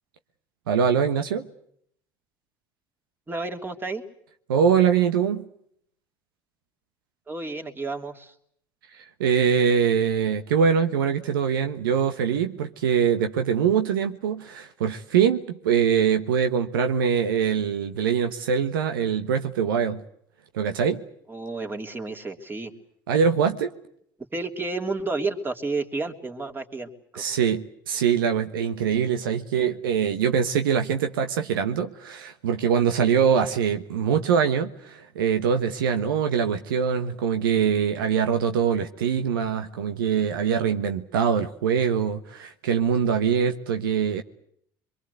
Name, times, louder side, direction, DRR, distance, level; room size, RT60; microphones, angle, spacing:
voice 1, 0.7-1.4 4.5-5.5 8.9-20.0 20.5-21.0 23.1-23.7 27.2-44.2, right 7 dB, 85° right, 1.2 m, -23 dB
voice 2, 3.3-4.0 7.3-8.3 21.3-22.7 24.3-27.2, right 3 dB, 20° right, 3.1 m, -31 dB
24.0 x 23.0 x 8.2 m
hypercardioid pair, 70°, 11 cm